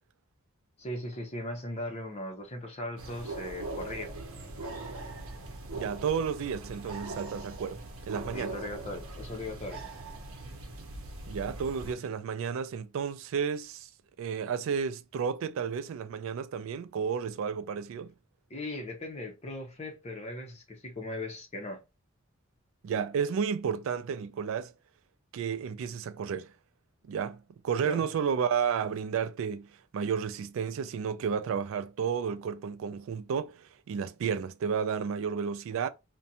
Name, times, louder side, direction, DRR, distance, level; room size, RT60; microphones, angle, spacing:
voice 1, 0.8-4.1 8.3-9.9 18.5-21.8 27.8-28.0, left 1 dB, 30° left, 0.7 m, -38 dB
sound 1, 3.0-11.9, right 2 dB, 80° right, 0.7 m, -41 dB
voice 2, 5.7-8.6 11.3-13.9 14.2-18.1 22.8-24.7 25.3-26.5 27.1-29.7 29.9-35.9, right 6 dB, 65° right, 0.3 m, -32 dB
2.5 x 2.2 x 2.7 m
head